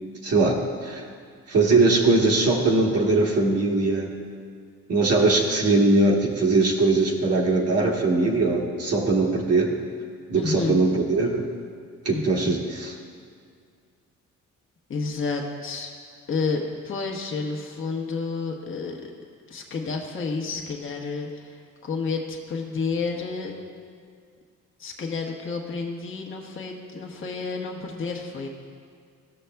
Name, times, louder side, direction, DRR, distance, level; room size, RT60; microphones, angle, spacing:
voice 1, 0.2-1.0 1.5-4.1 4.9-9.7 10.3-11.5 12.0-12.9, right 3 dB, 50° right, -1 dB, 1.3 m, -21 dB
voice 2, 10.3-10.7 12.1-12.6 14.9-15.9 16.3-19.1 19.5-23.5 24.8-28.5, left 4 dB, 40° left, 0 dB, 1.1 m, -30 dB
14.0 x 6.3 x 2.3 m, 2.1 s
cardioid pair, 80°, 32 cm